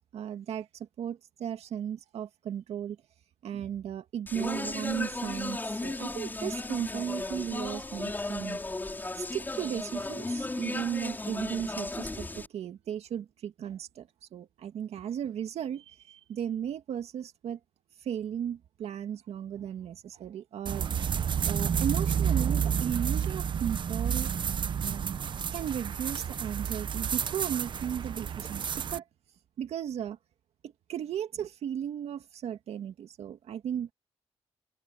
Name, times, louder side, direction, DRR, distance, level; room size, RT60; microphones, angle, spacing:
voice 1, 0.0-3.0 3.4-8.6 9.2-14.1 14.3-17.6 18.0-21.0 21.3-24.3 24.8-25.2 25.5-29.0 29.6-30.2 30.6-33.9, right 9 dB, 80° right, 2.1 m, -36 dB
Speech, 4.3-12.5, left 2 dB, 20° left, 5.4 m, -35 dB
sound 1, 20.7-29.0, right 8 dB, 50° right, 0.8 m, -30 dB
cardioid pair, 115°, 11 cm